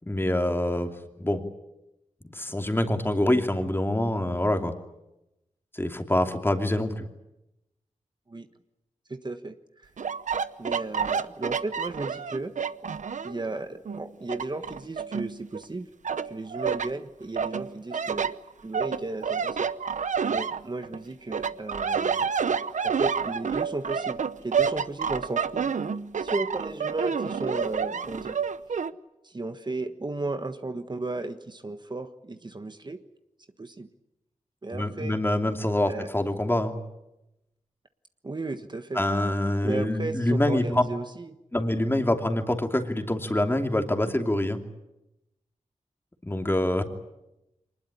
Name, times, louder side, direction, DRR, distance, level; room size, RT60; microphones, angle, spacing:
voice 1, 0.1-0.9 1.2-1.4 2.3-4.7 5.7-7.0 34.7-36.8 38.9-40.8 41.5-44.6 46.2-46.8, left 1 dB, 15° left, 5 dB, 2.8 m, -25 dB
voice 2, 9.1-9.9 10.6-12.5 13.2-15.9 16.2-18.4 18.6-19.7 20.3-22.3 22.8-25.8 26.2-28.4 29.2-33.0 33.6-33.9 34.6-35.2 35.9-36.1 38.2-39.0 39.6-41.4, right 2 dB, 35° right, 8 dB, 1.4 m, -34 dB
sound 1, 10.0-13.4 13.9-15.6 16.0-16.9 17.4-21.0 21.3-28.9, right 6 dB, 80° right, 0.8 m, -29 dB
24.5 x 20.0 x 9.9 m, 0.92 s
wide cardioid pair, 80°, 13 cm